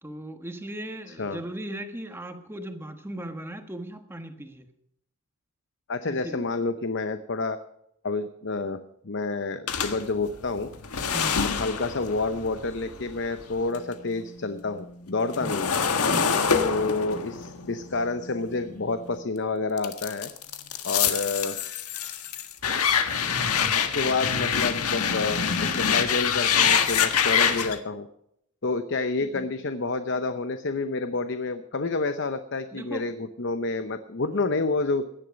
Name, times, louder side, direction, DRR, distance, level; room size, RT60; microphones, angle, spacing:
voice 1, 0.0-4.7 6.1-6.5 11.1-11.5 15.4-15.5 16.1-16.5 29.2-29.5 32.7-33.1 34.2-34.5, right 1 dB, 10° right, 7 dB, 1.3 m, -38 dB
voice 2, 5.9-7.6 8.0-10.7 11.6-15.7 16.6-20.3 20.8-21.6 23.7-28.1 28.6-35.0, left 3 dB, 55° left, 10 dB, 0.8 m, -29 dB
sound 1, 9.7-13.9 14.3-19.2 19.8-27.8, left 7 dB, 85° left, 1.5 m, -26 dB
16.5 x 11.0 x 5.2 m, 0.76 s
head